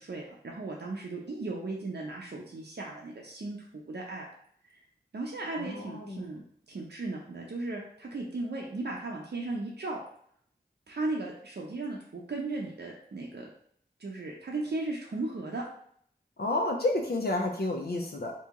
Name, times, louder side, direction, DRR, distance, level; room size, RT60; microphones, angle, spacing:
voice 1, 0.0-4.3 4.6-4.8 5.1-6.4 6.7-10.0 10.9-13.5 14.0-15.6, right 2 dB, 75° right, -2 dB, 0.6 m, -36 dB
voice 2, 5.6-6.3 16.4-18.3, left 2 dB, 65° left, 2 dB, 0.5 m, -30 dB
2.8 x 2.7 x 3.5 m, 0.64 s
wide cardioid pair, 60°, 17 cm